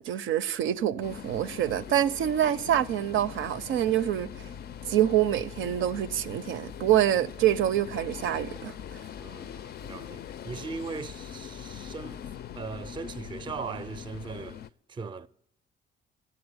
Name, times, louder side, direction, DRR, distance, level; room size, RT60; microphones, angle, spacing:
voice 1, 0.0-4.3 4.9-8.7, right 11 dB, 80° right, 0.5 m, -26 dB
sound 1, 1.0-14.7, left 9 dB, 55° left, 0.4 m, -42 dB
voice 2, 9.2-12.2 12.6-14.6 14.9-15.3, right 4 dB, 25° right, 0.5 m, -39 dB
11.0 x 8.0 x 9.6 m
cardioid pair, 90°, 20 cm